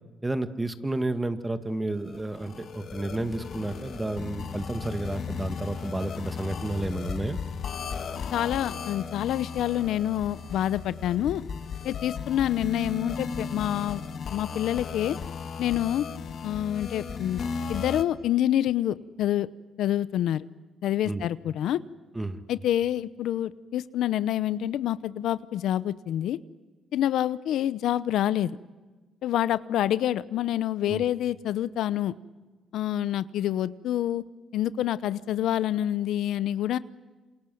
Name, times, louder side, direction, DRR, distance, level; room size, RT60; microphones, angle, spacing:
voice 1, 0.2-7.4 21.0-21.2 22.2-22.4 30.9-31.0, right 2 dB, 15° right, 9 dB, 2.0 m, -31 dB
sound 1, 2.1-18.0, left 6 dB, 60° left, 1.9 m, -36 dB
voice 2, 8.3-11.4 11.8-14.0 14.3-15.2 15.6-16.1 16.4-17.4 17.7-19.5 19.8-20.4 20.8-21.8 22.5-26.4 26.9-28.5 29.2-32.1 32.7-34.2 34.5-36.8, left 12 dB, 80° left, 16 dB, 0.8 m, -27 dB
27.5 x 27.0 x 7.8 m, 1.3 s
cardioid pair, 90°, 0 cm